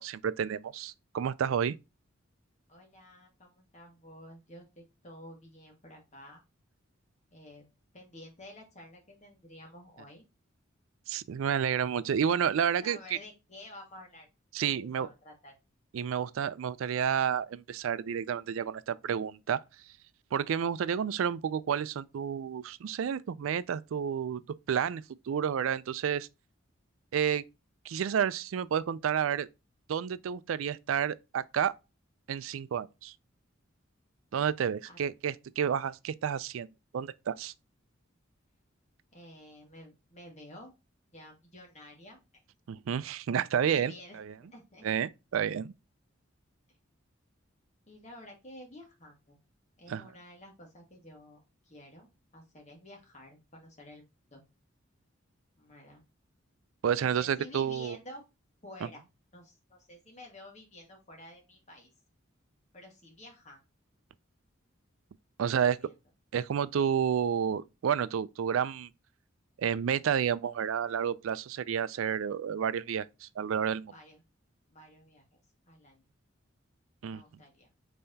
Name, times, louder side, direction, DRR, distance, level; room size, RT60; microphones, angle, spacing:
voice 1, 0.0-1.7 11.1-13.2 14.5-15.1 15.9-19.6 20.3-26.3 27.1-27.4 27.8-29.5 29.9-31.7 32.3-33.1 34.3-36.7 36.9-37.5 42.7-44.3 44.8-45.7 49.9-50.1 56.8-58.0 65.4-65.8 66.3-68.9 69.6-73.9 77.0-77.2, right 8 dB, 85° right, 0.4 m, -30 dB
voice 2, 2.7-6.4 7.3-7.6 7.9-10.2 12.8-14.3 14.7-15.5 34.9-35.0 39.1-40.7 41.1-42.2 43.6-44.9 47.8-49.4 49.8-54.0 54.3-54.4 55.6-56.0 56.9-58.2 58.6-59.0 59.3-61.9 62.7-63.6 65.4-65.9 73.9-74.2 74.7-75.4 75.7-76.1 77.0-77.7, left 1 dB, 35° left, 1.6 m, -51 dB
5.5 x 3.3 x 2.7 m
head